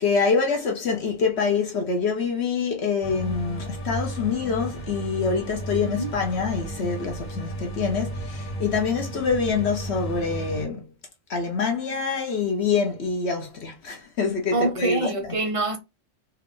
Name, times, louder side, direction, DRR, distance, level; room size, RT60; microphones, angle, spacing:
voice 1, 0.0-10.9 11.3-15.3, left 5 dB, 60° left, 0.9 m, -25 dB
sound 1, 3.0-10.7, right 1 dB, 90° left, 1.5 m, -33 dB
voice 2, 5.8-6.1 14.5-15.8, right 2 dB, 50° right, 0.4 m, -25 dB
3.4 x 2.4 x 3.5 m
omnidirectional pair, 1.4 m